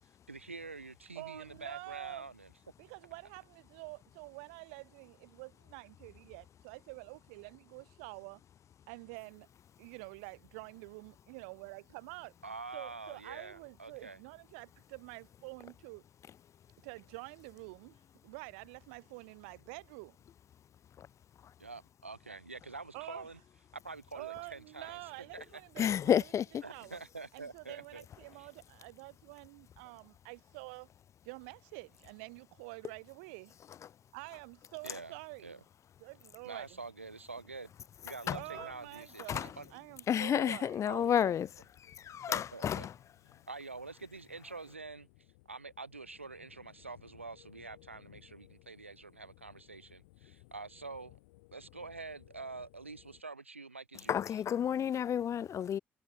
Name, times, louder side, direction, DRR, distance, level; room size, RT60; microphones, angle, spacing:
voice 1, 0.3-2.5 12.4-14.2 21.6-23.4 23.7-25.0 25.3-25.5 26.6-28.0 28.4-28.5 34.8-35.1 35.4-35.6 36.4-37.7 38.0-39.7 40.3-40.5 40.8-41.3 42.3-42.9 43.5-45.1 45.5-51.2 51.5-54.3, right 3 dB, 90° right, 0.4 m, -46 dB
voice 2, 1.1-2.3 2.8-8.4 8.9-9.5 9.8-12.3 12.7-16.0 16.8-18.0 18.2-20.2 22.9-23.3 24.1-26.3 26.7-27.0 27.3-30.9 31.2-33.5 34.1-35.6 36.0-36.8 38.3-40.9, right 31 dB, 70° right, 1.1 m, -48 dB
voice 3, 25.8-26.6 38.3-38.4 39.3-39.5 40.1-41.5 41.8-42.9 54.1-55.8, left 9 dB, 50° left, 0.7 m, -31 dB
sound 1, 41.4-53.2, left 25 dB, 70° left, 4.1 m, -61 dB
figure-of-eight pair, 40°, 7 cm